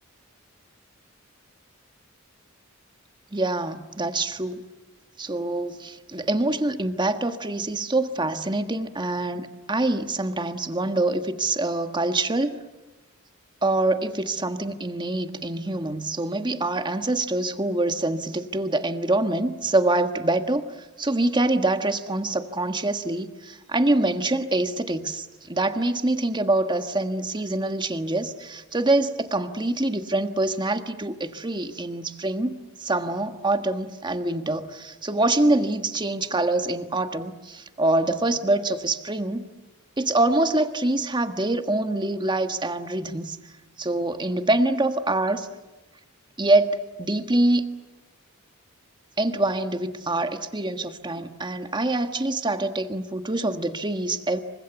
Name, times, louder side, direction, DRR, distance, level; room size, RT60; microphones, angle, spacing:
voice 1, 3.3-4.6 5.2-12.6 13.6-20.7 21.0-39.5 40.0-43.4 43.8-45.5 46.4-47.6 49.2-54.4, right 2 dB, 20° right, 8 dB, 1.5 m, -25 dB
28.0 x 25.0 x 8.2 m, 1.1 s
head